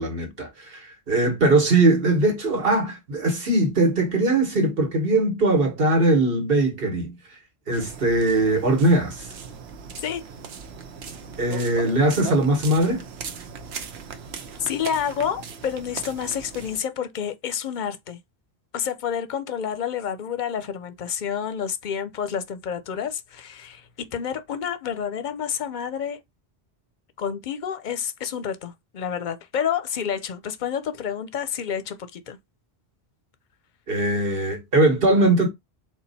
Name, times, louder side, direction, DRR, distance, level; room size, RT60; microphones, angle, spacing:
voice 1, 0.0-7.1 7.7-9.3 11.4-13.1 33.9-35.5, right 2 dB, 60° right, 1.5 m, -21 dB
sound 1, 7.7-16.8, right 6 dB, 80° right, 1.0 m, -38 dB
voice 2, 14.6-18.2 18.7-26.2 27.2-32.4, left 8 dB, 55° left, 0.6 m, -29 dB
4.2 x 2.3 x 4.1 m
omnidirectional pair, 1.1 m